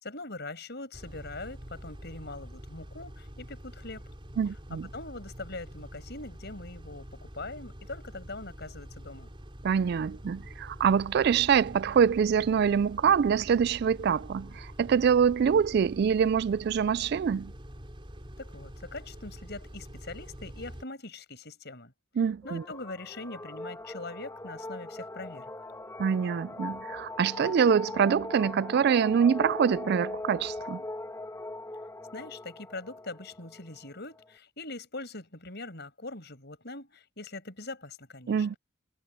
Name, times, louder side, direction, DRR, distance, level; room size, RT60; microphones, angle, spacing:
voice 1, 0.0-4.0 4.9-7.1 7.3-9.3 18.4-21.9 22.4-25.4 32.1-38.5, left 2 dB, 60° left, 7.5 m, -42 dB
Car / Idling / Accelerating revving vroom, 0.9-20.8, equal, 25° right, 4.8 m, -46 dB
voice 2, 4.4-4.9 9.6-17.5 22.2-22.6 26.0-30.8 38.3-38.6, right 7 dB, 55° right, 0.3 m, -25 dB
sound 1, 22.4-34.3, left 2 dB, 15° left, 1.4 m, -40 dB
head